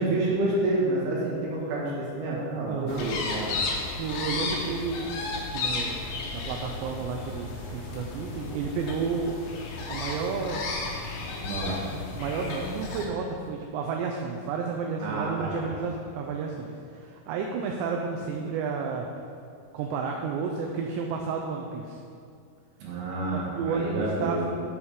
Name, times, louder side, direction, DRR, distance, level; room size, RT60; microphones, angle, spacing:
voice 1, 0.0-3.5 4.3-4.5 11.4-11.9 15.0-15.7 22.8-24.4, right 2 dB, 65° right, -5 dB, 3.5 m, -29 dB
voice 2, 2.7-3.1 4.0-5.1 5.5-6.0 6.3-9.4 9.9-10.6 12.2-19.1 19.7-22.0 23.3-24.4, right 5 dB, 85° right, 1 dB, 2.8 m, -31 dB
sound 1, 2.9-13.1, left 3 dB, 80° left, 1.9 m, -34 dB
8.2 x 7.2 x 4.8 m, 2.4 s
omnidirectional pair, 5.1 m